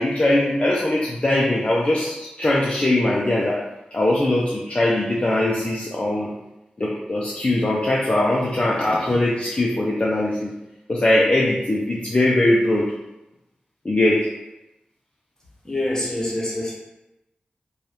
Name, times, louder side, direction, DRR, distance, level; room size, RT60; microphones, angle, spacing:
voice 1, 0.0-3.6 3.9-6.3 6.8-10.5 10.9-12.9 13.8-14.3, left 1 dB, 35° left, -4 dB, 0.4 m, -21 dB
voice 2, 15.6-16.7, left 1 dB, 20° left, -5 dB, 0.9 m, -25 dB
2.7 x 2.3 x 3.3 m, 0.95 s
wide cardioid pair, 70°, 3 cm